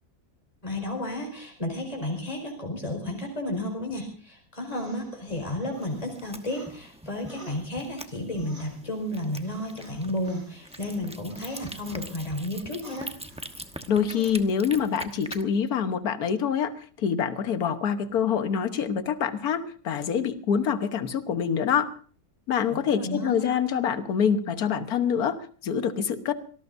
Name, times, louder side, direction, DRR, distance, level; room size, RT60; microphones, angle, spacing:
voice 1, 0.6-13.1 22.7-23.5, left 1 dB, 20° left, 2 dB, 4.9 m, -32 dB
sound 1, 4.7-6.8 7.3-12.1 12.5-13.8 14.1-14.3, right 1 dB, 40° right, 4.4 m, -50 dB
sound 2, 5.7-15.4, right 1 dB, 5° right, 0.8 m, -43 dB
voice 2, 13.9-21.9 22.5-26.3, left 7 dB, 65° left, 9 dB, 1.6 m, -26 dB
25.5 x 18.5 x 2.6 m, 0.42 s
omnidirectional pair, 1.8 m